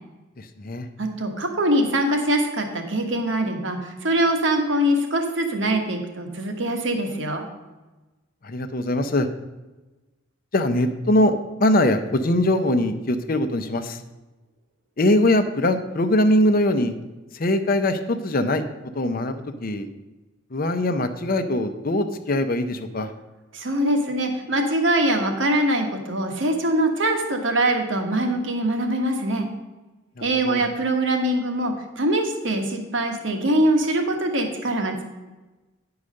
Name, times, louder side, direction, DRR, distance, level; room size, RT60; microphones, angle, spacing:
voice 1, 0.4-0.9 8.4-9.3 10.5-11.3 11.6-14.0 15.0-16.9 17.3-18.6 18.9-19.9 20.5-23.1 30.2-30.6, left 1 dB, 45° left, 9 dB, 0.7 m, -22 dB
voice 2, 1.0-7.4 23.5-29.5 30.2-35.1, right 1 dB, 70° right, 4 dB, 1.4 m, -23 dB
9.9 x 4.8 x 6.4 m, 1.1 s
head